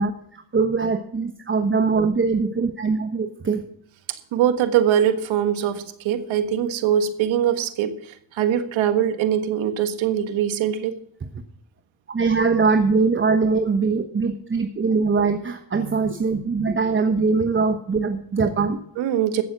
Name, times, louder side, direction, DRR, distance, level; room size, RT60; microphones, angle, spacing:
voice 1, 0.0-3.6 12.1-18.8, right 4 dB, 25° right, 7 dB, 1.1 m, -22 dB
voice 2, 4.1-8.0 8.3-11.0 15.7-16.0 16.3-16.7 19.0-19.4, right 9 dB, 75° right, 10 dB, 1.6 m, -22 dB
15.0 x 7.2 x 6.1 m, 0.67 s
cardioid pair, 90°, 47 cm